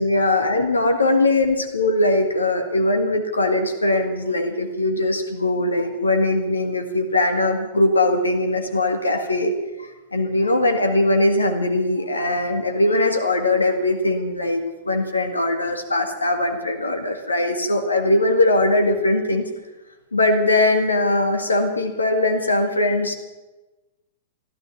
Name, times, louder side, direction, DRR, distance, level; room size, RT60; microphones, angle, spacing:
voice 1, 0.0-9.5 9.8-19.5 20.1-23.1, left 2 dB, 80° left, 5 dB, 1.8 m, -20 dB
15.0 x 13.0 x 7.3 m, 1.1 s
figure-of-eight pair, 100°, 0 cm